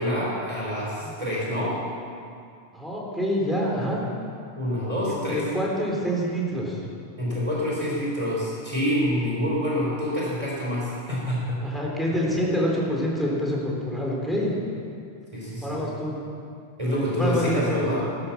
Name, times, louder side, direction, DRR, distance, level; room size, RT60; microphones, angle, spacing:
voice 1, 0.0-1.8 4.6-5.4 7.2-11.6 15.3-15.8 16.8-18.0, equal, 30° right, -6 dB, 4.2 m, -27 dB
voice 2, 2.7-4.0 5.1-6.8 9.2-9.3 11.6-14.5 15.6-16.1 16.8-18.0, equal, ahead, -4 dB, 3.7 m, -27 dB
14.0 x 13.0 x 7.2 m, 2.4 s
omnidirectional pair, 1.1 m